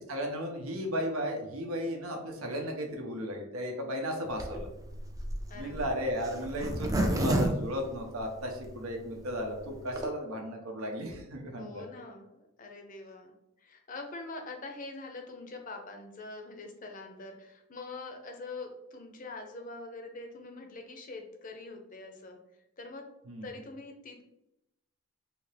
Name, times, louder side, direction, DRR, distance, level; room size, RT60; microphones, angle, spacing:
voice 1, 0.0-4.7 5.5-11.9 23.3-23.5, equal, 80° right, 2 dB, 0.8 m, -35 dB
Zipper (clothing), 4.3-8.7 9.1-9.2 9.4-9.5 9.7-10.1, right 1 dB, 15° right, 0.4 m, -30 dB
voice 2, 5.5-5.9 11.5-13.3 13.6-22.4 22.8-23.1 23.4-24.2, left 3 dB, 40° left, 4 dB, 0.5 m, -44 dB
3.4 x 2.8 x 3.3 m, 0.87 s
head